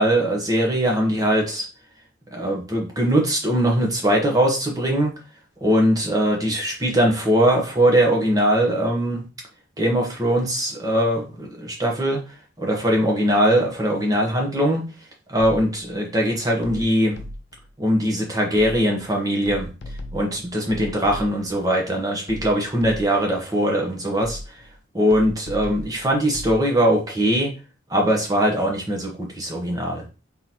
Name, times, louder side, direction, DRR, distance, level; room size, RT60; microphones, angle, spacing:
voice 1, 0.0-1.6 2.3-5.1 5.6-9.2 9.8-12.2 12.6-14.8 15.3-17.2 17.8-19.7 20.1-24.5 24.9-27.5 27.9-30.0, equal, 20° right, 0 dB, 1.0 m, -21 dB
sound 1, 15.4-15.9 16.6-17.7 18.6-19.1 19.5-21.6 22.3-23.3 24.2-24.7 25.1-26.6, left 1 dB, 55° left, 0.6 m, -37 dB
3.8 x 3.8 x 2.9 m, 0.32 s
head